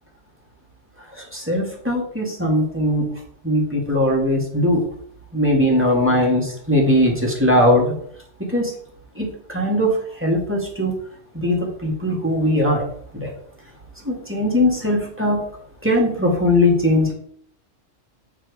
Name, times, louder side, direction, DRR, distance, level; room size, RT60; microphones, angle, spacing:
voice 1, 1.3-3.1 3.4-4.8 5.3-7.9 8.4-8.7 9.2-9.9 10.2-11.0 11.3-12.8 13.1-13.3 14.1-15.4 15.8-17.1, left 1 dB, 10° right, -2 dB, 1.9 m, -19 dB
8.6 x 4.7 x 4.7 m, 0.62 s
omnidirectional pair, 1.3 m